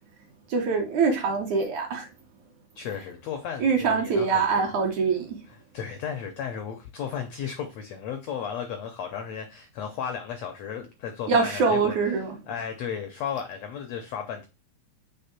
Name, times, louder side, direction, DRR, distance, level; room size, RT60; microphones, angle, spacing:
voice 1, 0.5-2.1 3.6-5.4 11.3-12.4, right 5 dB, 65° right, 2.1 m, -24 dB
voice 2, 2.7-4.6 5.5-11.9 12.5-14.5, left 7 dB, 85° left, 1.5 m, -34 dB
6.5 x 3.4 x 5.8 m
omnidirectional pair, 4.2 m